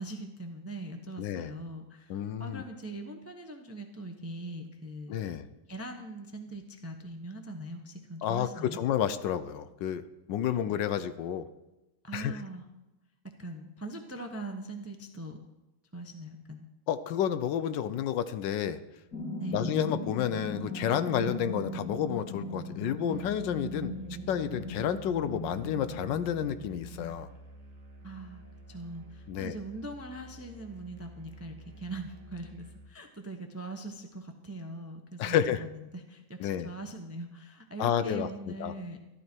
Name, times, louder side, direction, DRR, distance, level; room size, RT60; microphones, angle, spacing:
voice 1, 0.0-5.3 5.7-8.8 10.6-10.8 12.0-12.6 13.2-15.4 15.9-16.7 19.4-19.7 28.0-28.4 28.7-39.0, right 1 dB, 15° right, 5 dB, 0.5 m, -41 dB
voice 2, 1.2-1.5 2.1-2.6 5.1-5.4 8.2-11.5 12.1-12.4 16.9-18.8 19.5-23.9 24.3-27.3 29.3-29.5 35.2-35.6 36.4-36.7 37.8-38.7, left 9 dB, 75° left, 12 dB, 1.3 m, -30 dB
sound 1, 19.1-27.1, left 1 dB, 55° left, 3.4 m, -39 dB
Musical instrument, 23.0-33.0, right 2 dB, 45° right, 1.9 m, -51 dB
13.5 x 12.5 x 4.5 m, 1.0 s
omnidirectional pair, 2.1 m